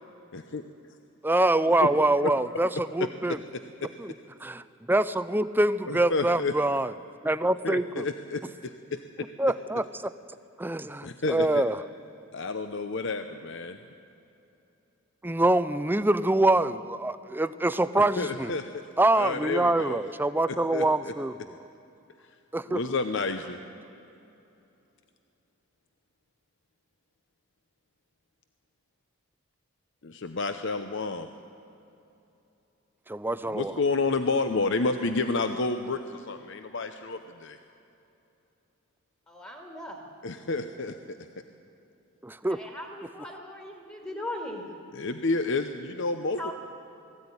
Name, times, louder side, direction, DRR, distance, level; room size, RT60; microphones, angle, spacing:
voice 1, 0.3-0.6 1.8-1.9 2.2-2.3 3.0-3.9 5.9-6.5 7.6-9.3 11.0-11.6 12.3-13.8 18.0-18.9 19.1-20.0 20.5-21.1 22.7-23.6 30.0-31.3 33.5-37.6 40.2-41.2 45.0-46.5, left 3 dB, 55° left, 8 dB, 0.8 m, -30 dB
voice 2, 1.2-3.4 4.0-4.1 4.4-4.6 4.9-6.9 7.2-8.1 9.4-10.1 10.6-11.8 15.2-18.5 19.0-21.6 22.5-22.8 33.1-33.7 42.2-42.6, right 2 dB, 10° right, 14 dB, 0.4 m, -25 dB
voice 3, 39.3-40.0 42.4-44.7 46.4-46.5, left 1 dB, 15° left, 2 dB, 2.0 m, -38 dB
20.5 x 15.0 x 9.7 m, 2.9 s
head